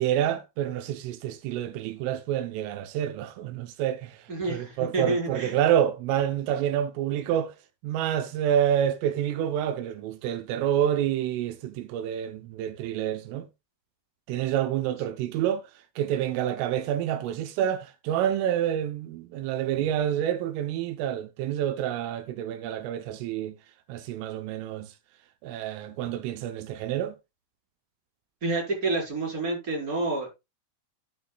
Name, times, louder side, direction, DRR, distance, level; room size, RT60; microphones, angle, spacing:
voice 1, 0.0-7.5 7.8-13.5 14.3-15.6 16.0-23.6 23.9-24.9 25.4-27.2, right 10 dB, 85° right, 3.4 m, -28 dB
voice 2, 4.3-5.5 28.4-30.3, right 2 dB, 20° right, 4.6 m, -28 dB
11.5 x 10.0 x 2.3 m
omnidirectional pair, 5.7 m